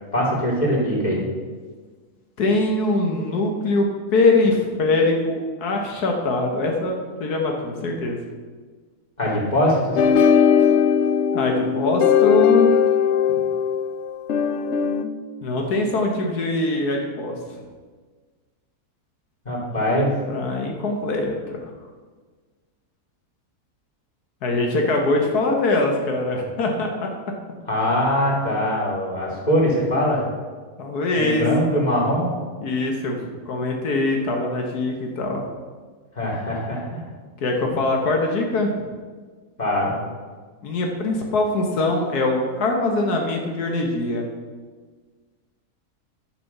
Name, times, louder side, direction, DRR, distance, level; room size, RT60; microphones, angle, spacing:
voice 1, 0.1-1.3 9.2-10.0 19.4-20.1 27.7-30.3 31.2-32.3 36.1-37.0 39.6-40.0, equal, 25° left, -4 dB, 3.0 m, -22 dB
voice 2, 2.4-8.2 11.3-12.7 13.3-13.5 15.4-17.3 20.3-21.6 24.4-27.1 30.8-31.4 32.6-33.2 33.4-35.4 37.4-38.8 40.6-44.3, left 2 dB, 90° left, 1 dB, 1.8 m, -22 dB
sound 1, 10.0-15.0, left 7 dB, 60° left, 0.8 m, -18 dB
11.0 x 6.0 x 6.7 m, 1.5 s
omnidirectional pair, 1.6 m